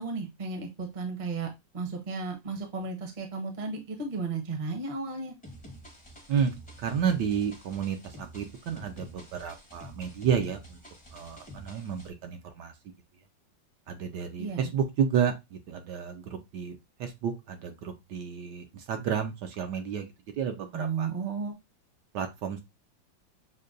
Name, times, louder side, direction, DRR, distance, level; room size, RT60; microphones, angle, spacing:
voice 1, 0.0-1.5 1.7-5.3 14.4-14.7 20.7-21.5, right 4 dB, 35° right, 3 dB, 0.7 m, -34 dB
sound 1, 5.4-12.1, equal, 10° left, 0.5 m, -48 dB
voice 2, 6.8-10.8 11.1-12.7 13.9-16.2 16.5-20.0 20.4-21.1 22.1-22.6, right 7 dB, 75° right, 5 dB, 1.2 m, -31 dB
6.5 x 2.2 x 2.4 m, 0.22 s
omnidirectional pair, 2.1 m